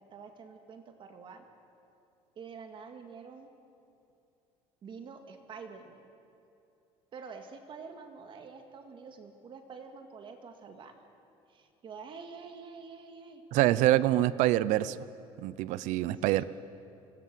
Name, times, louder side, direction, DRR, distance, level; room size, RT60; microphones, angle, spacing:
voice 1, 0.0-1.5 2.4-3.5 4.8-6.0 7.1-11.0 11.5-13.4 14.1-14.3 16.1-16.5, right 5 dB, 40° right, 6 dB, 2.1 m, -47 dB
voice 2, 13.5-15.0 15.4-16.4, right 15 dB, 80° right, 17 dB, 0.7 m, -25 dB
25.5 x 19.5 x 7.7 m, 2.7 s
cardioid pair, 125°, 12 cm